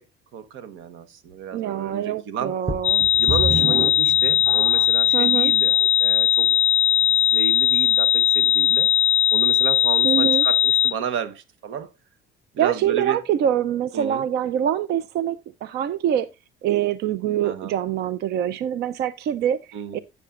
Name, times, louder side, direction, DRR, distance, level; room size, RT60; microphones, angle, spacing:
voice 1, 0.3-2.5 3.2-6.5 7.3-8.9 9.3-11.9 12.5-13.2 13.9-14.2 17.4-17.7 19.7-20.0, right 7 dB, 80° right, 1.0 m, -32 dB
voice 2, 1.5-3.1 5.1-5.5 10.0-10.5 12.6-16.3 16.6-19.6 19.9-20.0, right 10 dB, 55° right, 0.4 m, -24 dB
sound 1, 2.7-5.1 5.8-5.9 6.5-6.6, right 3 dB, 15° right, 0.7 m, -28 dB
sound 2, 2.8-10.9, left 11 dB, 35° left, 0.4 m, -19 dB
12.5 x 8.3 x 2.4 m
cardioid pair, 165°, 20 cm